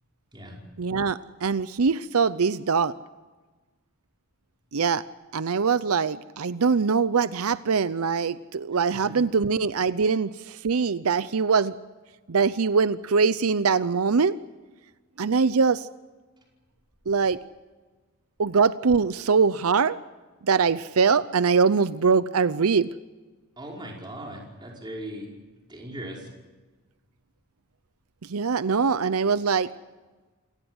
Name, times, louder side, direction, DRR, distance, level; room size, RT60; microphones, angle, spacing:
voice 1, 0.8-2.9 4.7-5.0 5.3-11.7 12.3-14.4 15.2-15.9 17.1-17.4 18.4-20.0 20.4-22.9 28.2-29.7, right 5 dB, 85° right, 15 dB, 0.7 m, -23 dB
voice 2, 23.6-25.3 25.7-26.3, right 1 dB, 20° right, -1 dB, 5.3 m, -38 dB
27.5 x 18.0 x 8.0 m, 1.3 s
head